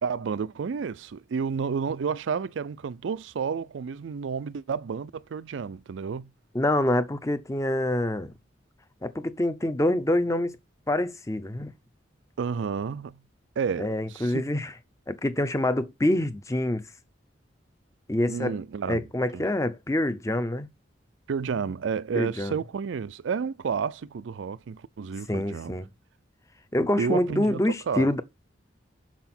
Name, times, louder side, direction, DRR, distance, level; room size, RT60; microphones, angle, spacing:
voice 1, 0.0-6.3 12.4-13.2 13.6-14.3 18.3-19.1 19.3-19.4 21.3-25.7 27.0-28.1, right 6 dB, 80° right, 0.4 m, -31 dB
voice 2, 6.5-8.3 9.0-10.6 10.9-11.7 13.8-14.7 15.1-16.9 18.1-18.6 18.8-20.7 22.1-22.6 25.3-25.9 26.7-28.2, left 1 dB, 15° left, 0.6 m, -26 dB
6.6 x 5.9 x 4.3 m
head